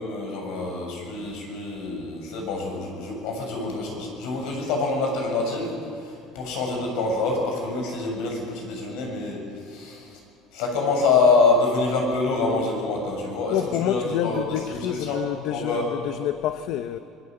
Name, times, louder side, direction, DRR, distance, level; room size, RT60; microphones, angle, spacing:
voice 1, 0.0-10.2 10.5-15.2 15.5-15.9, left 3 dB, 75° left, 7.4 m, -26 dB
voice 2, 13.5-17.0, left 11 dB, 60° left, 0.8 m, -28 dB
25.0 x 22.5 x 7.9 m
cardioid pair, 165°, 0 cm